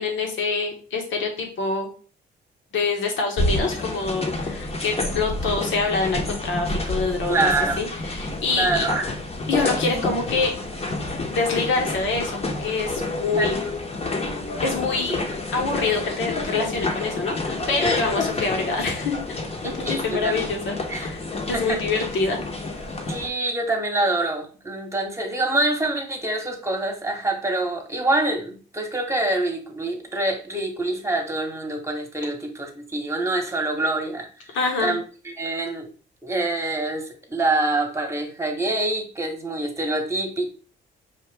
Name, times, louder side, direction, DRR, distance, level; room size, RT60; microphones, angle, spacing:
voice 1, 0.0-1.9 2.7-7.5 7.8-8.9 9.5-10.5 11.3-13.6 14.6-19.2 19.6-21.2 21.5-22.4 34.5-35.0, left 3 dB, 75° left, 2 dB, 1.4 m, -26 dB
sound 1, 3.4-23.3, left 2 dB, 30° left, 1.0 m, -29 dB
voice 2, 7.3-7.8 8.5-9.1 13.4-13.5 19.6-20.4 20.9-21.1 21.5-22.0 23.1-35.9 36.2-40.5, right 2 dB, 15° right, 3 dB, 1.2 m, -26 dB
5.6 x 2.5 x 3.3 m, 0.39 s
cardioid pair, 90°, 20 cm